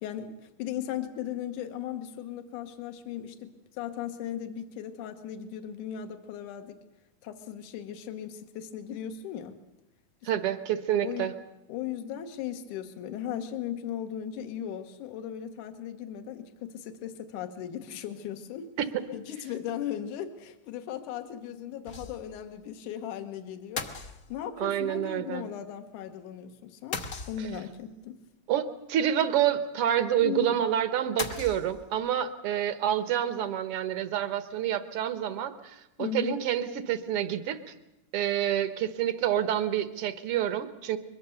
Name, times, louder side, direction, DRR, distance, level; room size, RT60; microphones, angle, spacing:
voice 1, 0.0-6.8 7.2-9.6 11.0-11.4 11.7-18.7 19.1-23.9 24.3-27.0 27.3-28.2 30.2-30.6 36.0-36.4, left 9 dB, 75° left, 7 dB, 2.6 m, -37 dB
voice 2, 10.2-11.3 24.6-25.5 27.4-27.5 28.5-37.6 38.1-41.0, right 10 dB, 65° right, 11 dB, 1.5 m, -28 dB
sound 1, 21.9-22.4 22.7-22.8 23.8-24.6 26.9-27.8 31.2-32.1, left 4 dB, 60° left, 0.9 m, -37 dB
22.5 x 22.0 x 6.8 m, 0.91 s
omnidirectional pair, 3.7 m